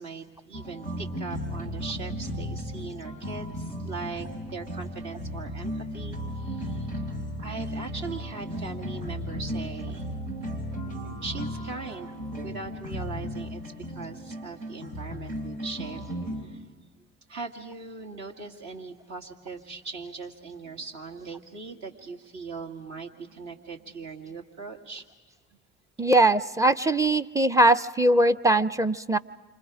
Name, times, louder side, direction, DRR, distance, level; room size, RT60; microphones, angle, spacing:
voice 1, 0.0-6.9 7.4-10.1 11.2-12.1 12.4-13.6 13.9-16.6 17.3-25.0, right 4 dB, 60° right, 3 dB, 2.2 m, -40 dB
sound 1, 0.5-16.4, equal, 80° right, 3.5 m, -35 dB
voice 2, 26.0-29.2, right 1 dB, 10° right, 12 dB, 0.6 m, -21 dB
28.0 x 26.0 x 5.0 m, 1.3 s
hypercardioid pair, 50°, 33 cm